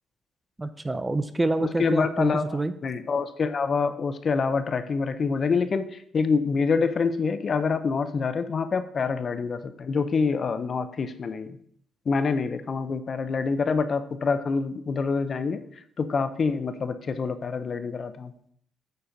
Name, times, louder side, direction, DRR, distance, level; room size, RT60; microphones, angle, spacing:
voice 1, 0.6-2.7, right 2 dB, 15° right, 12 dB, 0.6 m, -27 dB
voice 2, 1.6-11.6 12.1-15.6 16.0-18.3, left 5 dB, 45° left, 11 dB, 0.7 m, -26 dB
9.2 x 4.3 x 5.2 m, 0.66 s
cardioid pair, 90°, 0 cm